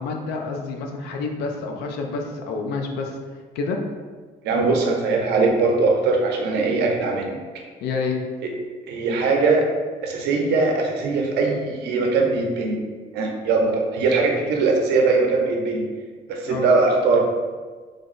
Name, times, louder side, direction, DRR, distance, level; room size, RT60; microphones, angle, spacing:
voice 1, 0.0-3.2 3.6-3.8 4.6-4.8 7.8-8.2 16.5-16.7, left 4 dB, 85° left, 2 dB, 0.5 m, -28 dB
voice 2, 4.4-7.4 8.9-9.7 10.0-12.8 13.1-15.8 16.3-17.2, right 3 dB, 80° right, 1 dB, 0.6 m, -20 dB
3.3 x 2.0 x 3.8 m, 1.5 s
cardioid pair, 110°, 17 cm